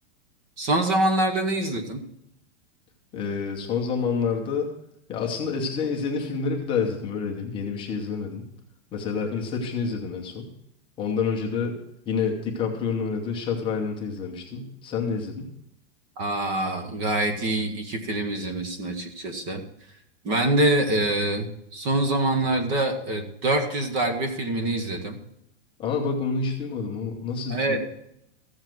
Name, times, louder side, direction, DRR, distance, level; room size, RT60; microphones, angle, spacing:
voice 1, 0.6-2.0 16.2-19.6 20.2-25.2 27.5-27.8, right 1 dB, 25° right, 7 dB, 1.2 m, -25 dB
voice 2, 3.1-4.7 5.1-8.5 8.9-10.5 11.0-11.8 12.1-15.5 25.8-27.8, left 5 dB, 15° left, 0 dB, 0.9 m, -28 dB
14.5 x 7.3 x 6.1 m, 0.77 s
supercardioid pair, 175°, 35 cm